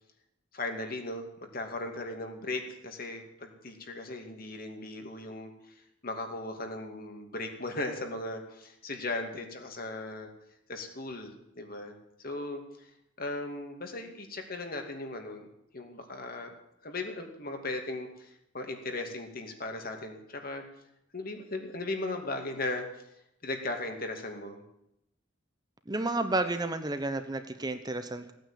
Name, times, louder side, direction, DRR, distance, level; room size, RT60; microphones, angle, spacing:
voice 1, 0.5-5.7 6.0-10.3 10.7-11.9 12.2-12.9 13.2-15.5 15.7-16.5 16.8-20.6 21.1-22.8 23.4-24.6, left 2 dB, 50° left, 4 dB, 2.5 m, -37 dB
voice 2, 25.9-28.3, right 2 dB, 20° right, 9 dB, 1.0 m, -31 dB
16.5 x 9.2 x 8.9 m, 0.81 s
head